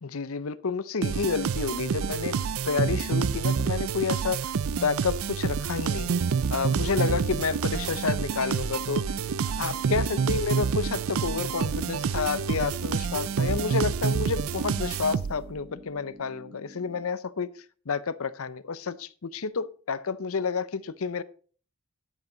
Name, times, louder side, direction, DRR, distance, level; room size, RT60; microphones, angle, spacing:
voice 1, 0.0-6.1 6.5-9.1 9.5-17.5 17.9-21.2, left 5 dB, 75° left, 0.7 m, -30 dB
sound 1, 1.0-15.6, right 6 dB, 70° right, 0.4 m, -28 dB
sound 2, 7.0-17.0, left 1 dB, 40° right, 1.7 m, -49 dB
10.5 x 8.7 x 3.9 m
head